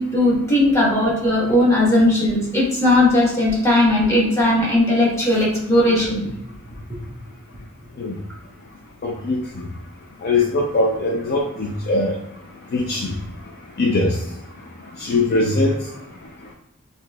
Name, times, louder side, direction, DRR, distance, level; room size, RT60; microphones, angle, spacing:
voice 1, 0.0-6.2, left 1 dB, 15° left, -5 dB, 1.2 m, -17 dB
voice 2, 9.0-9.6 10.2-12.2 12.7-13.1 13.8-14.2 15.0-15.8, left 2 dB, 45° left, -1 dB, 0.4 m, -21 dB
5.8 x 2.7 x 2.3 m, 0.89 s
head